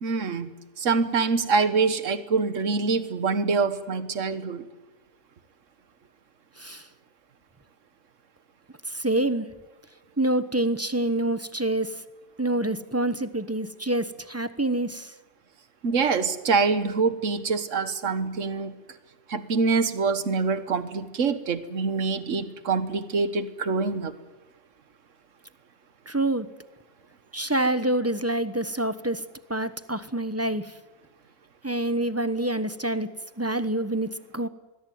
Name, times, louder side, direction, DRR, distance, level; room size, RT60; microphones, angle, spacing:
voice 1, 0.0-0.5 0.8-4.7 15.8-18.7 19.3-24.1, right 4 dB, 80° right, 12 dB, 1.7 m, -25 dB
voice 2, 6.6-6.9 8.9-9.5 10.2-11.9 12.4-15.1 26.1-26.5 27.3-29.2 29.5-30.7 31.6-33.1 33.4-34.5, right 1 dB, 15° right, 12 dB, 1.0 m, -26 dB
25.0 x 21.5 x 9.5 m, 1.1 s
omnidirectional pair, 1.3 m